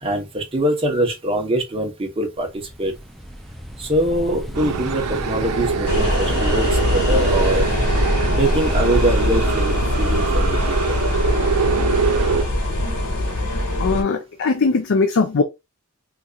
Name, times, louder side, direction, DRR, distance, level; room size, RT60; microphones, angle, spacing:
voice 1, 0.0-2.9 3.8-7.7 8.4-10.9, right 1 dB, 25° right, 1.0 m, -23 dB
sound 1, 2.4-8.8, equal, ahead, 0.4 m, -31 dB
sound 2, 4.5-12.4, right 5 dB, 90° right, 0.5 m, -24 dB
sound 3, 5.9-14.0, left 1 dB, 80° left, 1.5 m, -22 dB
voice 2, 13.8-15.4, left 4 dB, 55° left, 0.5 m, -19 dB
3.8 x 2.8 x 2.3 m
head